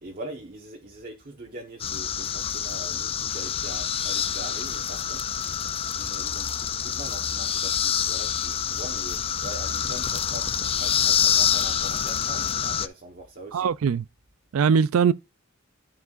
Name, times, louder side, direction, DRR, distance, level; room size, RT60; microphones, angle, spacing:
voice 1, 0.0-10.5 10.8-13.7, right 1 dB, 45° right, 1.2 m, -42 dB
sound 1, 1.8-12.9, left 8 dB, 25° left, 0.4 m, -27 dB
voice 2, 13.5-14.0 14.5-15.1, right 6 dB, 75° right, 0.4 m, -21 dB
13.5 x 4.7 x 2.5 m
head